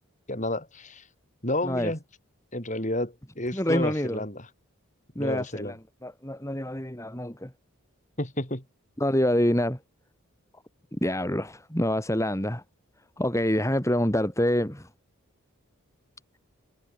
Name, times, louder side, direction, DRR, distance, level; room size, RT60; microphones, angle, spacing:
voice 1, 0.3-1.0 1.4-2.0 2.5-4.5 5.2-5.8 8.2-8.6, left 1 dB, 35° left, 7.2 m, -30 dB
voice 2, 3.5-4.2 5.2-5.8 6.0-7.5 9.0-9.8 11.0-12.6 13.2-14.9, left 1 dB, 15° left, 4.1 m, -26 dB
head